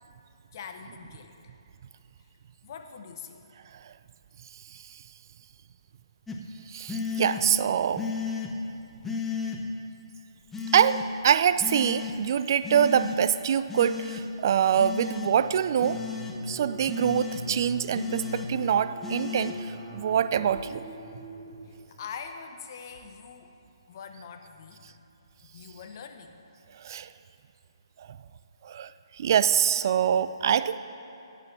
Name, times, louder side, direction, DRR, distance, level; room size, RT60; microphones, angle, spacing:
voice 1, 0.5-1.4 2.6-3.5 21.6-23.5 23.9-25.0 25.4-26.4, left 6 dB, 40° left, 6 dB, 1.1 m, -43 dB
sound 1, 6.3-6.4 6.9-7.4 8.0-8.5 9.0-9.6 10.5-11.0 11.6-12.1 12.6-13.2 13.7-14.2 14.8-15.3 15.8-16.3 16.9-17.4 17.9-18.5 19.0-19.5, left 6 dB, 5° left, 1.0 m, -34 dB
voice 2, 6.7-8.0 10.7-16.0 16.5-20.8 26.8-27.1 28.0-28.2 28.6-30.8, right 8 dB, 45° right, 14 dB, 0.4 m, -25 dB
sound 2, 15.2-22.2, equal, 20° right, 1.3 m, -43 dB
12.5 x 8.2 x 7.5 m, 2.9 s
figure-of-eight pair, 135°, 3 cm